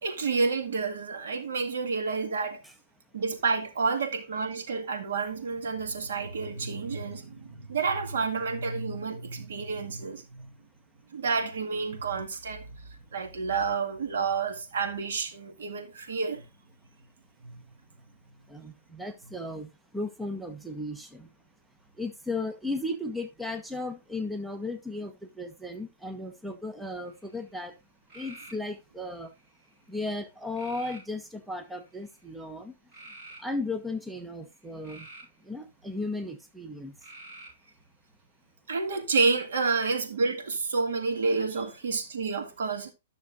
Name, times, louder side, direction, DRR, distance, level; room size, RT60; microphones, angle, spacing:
voice 1, 0.0-2.6 3.1-10.5 11.1-12.7 13.1-16.5 17.4-17.7 38.7-42.9, right 4 dB, 80° right, 1.9 m, -29 dB
voice 2, 18.5-21.3 22.0-25.1 25.4-27.7 28.2-29.3 29.9-32.7 33.4-35.1 35.5-36.9 41.6-41.7, left 2 dB, 5° right, 0.7 m, -35 dB
sound 1, 27.1-27.5 28.1-28.6 29.3-29.8 30.5-31.1 31.8-32.2 32.9-33.4 34.5-35.4 37.0-37.7, right 2 dB, 30° right, 6.1 m, -47 dB
12.0 x 6.4 x 2.6 m
hypercardioid pair, 165°, 0 cm